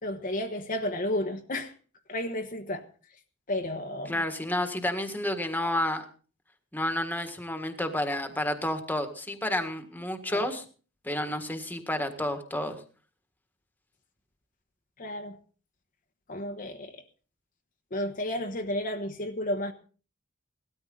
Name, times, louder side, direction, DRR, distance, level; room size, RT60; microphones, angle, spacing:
voice 1, 0.0-1.7 2.1-2.9 3.5-4.2 10.2-10.5 15.0-15.4 16.3-17.0 17.9-19.7, left 1 dB, 45° left, 1.2 m, -32 dB
voice 2, 4.1-6.1 6.7-10.6 11.0-12.8, left 1 dB, 10° left, 1.7 m, -30 dB
18.0 x 13.5 x 3.9 m
head